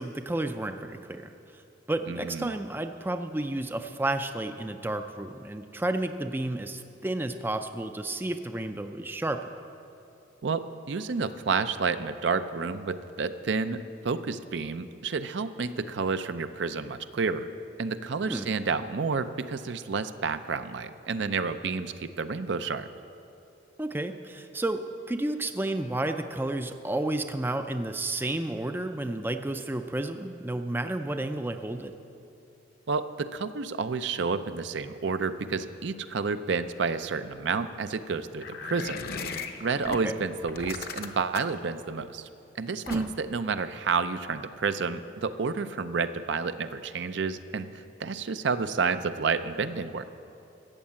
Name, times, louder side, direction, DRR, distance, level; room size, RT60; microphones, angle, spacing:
voice 1, 0.0-1.6 1.9-9.5 18.3-18.5 23.8-31.9 39.9-40.1 42.9-43.1, right 1 dB, 10° right, 7 dB, 0.4 m, -31 dB
voice 2, 2.1-2.5 10.4-17.5 17.8-22.9 32.9-39.0 39.6-42.3 42.6-50.0, right 4 dB, 65° right, 11 dB, 0.5 m, -30 dB
sound 1, 38.4-40.0 40.5-41.6 42.9-43.3, left 5 dB, 50° left, 0.8 m, -37 dB
14.5 x 7.3 x 8.7 m, 2.7 s
head